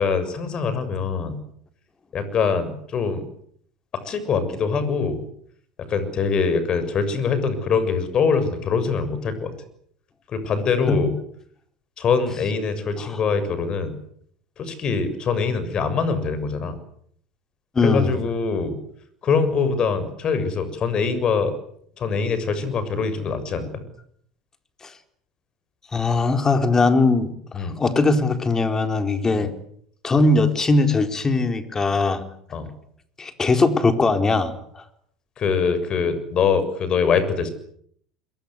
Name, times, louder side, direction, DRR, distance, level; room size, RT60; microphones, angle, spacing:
voice 1, 0.0-1.4 2.1-3.2 4.1-5.2 5.9-9.5 10.3-11.1 12.0-14.0 14.6-16.8 17.8-18.8 19.2-21.5 22.0-23.8 27.5-27.8 29.3-29.4 32.5-32.7 35.4-37.5, left 5 dB, 35° left, 12 dB, 6.9 m, -23 dB
voice 2, 17.7-18.1 24.8-24.9 25.9-29.5 30.0-32.2 33.2-34.8, left 3 dB, 20° left, 8 dB, 4.3 m, -20 dB
27.5 x 23.5 x 8.1 m, 0.67 s
figure-of-eight pair, 75°, 2 cm